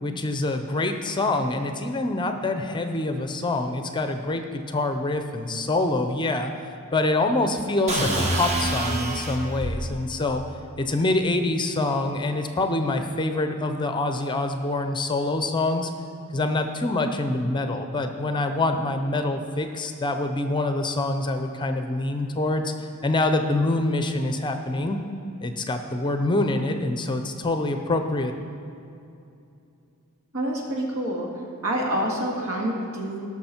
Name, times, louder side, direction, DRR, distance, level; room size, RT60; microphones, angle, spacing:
voice 1, 0.0-6.5 6.9-10.4 10.8-15.9 16.3-22.7 23.0-25.0 25.4-28.3, left 2 dB, 20° left, 6 dB, 0.6 m, -25 dB
sound 1, 7.9-9.8, right 1 dB, 30° right, 1.2 m, -26 dB
voice 2, 30.3-31.3 31.6-33.3, right 1 dB, 75° right, -1 dB, 2.0 m, -27 dB
18.0 x 6.3 x 4.4 m, 2.6 s
head